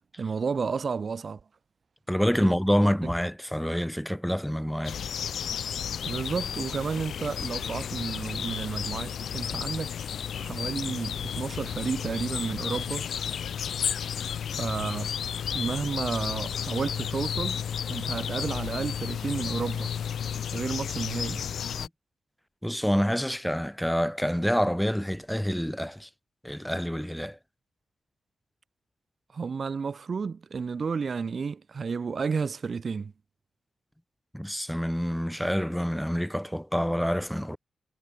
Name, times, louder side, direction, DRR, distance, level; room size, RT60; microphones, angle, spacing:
voice 1, 0.2-1.4 2.4-2.5 6.1-10.0 10.3-13.1 14.5-15.1 15.5-17.6 17.9-19.9 20.5-21.4 29.3-33.1, right 5 dB, 45° right, 3.8 m, -31 dB
voice 2, 2.1-5.0 21.8-21.9 22.6-26.1 26.4-27.4 34.3-37.6, equal, ahead, 4.8 m, -27 dB
sound 1, 4.8-21.9, left 8 dB, 80° left, 1.0 m, -32 dB
wide cardioid pair, 110°, 0 cm